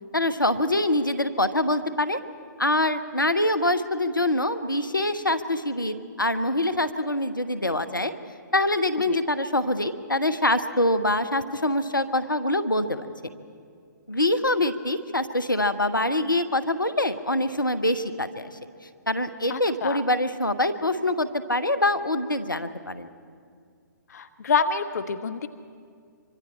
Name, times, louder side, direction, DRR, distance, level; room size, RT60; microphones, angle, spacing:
voice 1, 0.1-2.2 2.6-8.1 8.5-13.1 14.1-18.6 19.1-23.1, left 1 dB, 85° left, 11 dB, 1.1 m, -24 dB
voice 2, 19.5-20.0 24.1-25.5, left 5 dB, 55° left, 9 dB, 0.7 m, -27 dB
24.5 x 24.0 x 4.4 m, 2.2 s
figure-of-eight pair, 130°, 11 cm